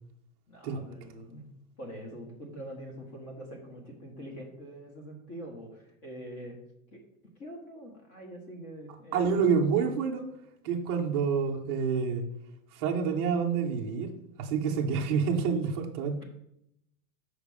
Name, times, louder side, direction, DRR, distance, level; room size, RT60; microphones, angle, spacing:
voice 1, 0.5-1.5 1.8-6.6 6.9-7.0 7.4-9.6, equal, 30° left, 1 dB, 1.5 m, -44 dB
voice 2, 9.1-10.3 10.6-12.3 12.7-14.1 14.4-16.2, right 6 dB, 20° right, 0 dB, 0.4 m, -28 dB
7.1 x 5.0 x 4.8 m, 0.76 s
supercardioid pair, 170°, 44 cm